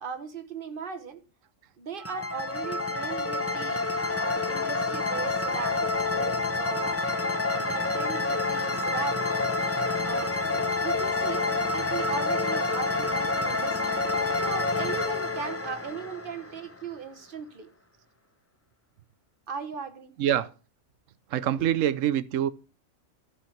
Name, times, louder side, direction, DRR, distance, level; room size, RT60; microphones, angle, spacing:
voice 1, 0.0-1.2 1.8-7.0 7.5-9.4 10.0-10.3 10.8-11.4 11.7-14.0 14.3-17.7 19.5-20.1 21.6-21.7, right 6 dB, 45° right, 1.2 m, -38 dB
sound 1, 2.0-16.8, left 3 dB, 15° left, 0.7 m, -28 dB
voice 2, 21.3-22.5, right 11 dB, 85° right, 1.0 m, -25 dB
13.0 x 4.9 x 5.8 m
omnidirectional pair, 1.3 m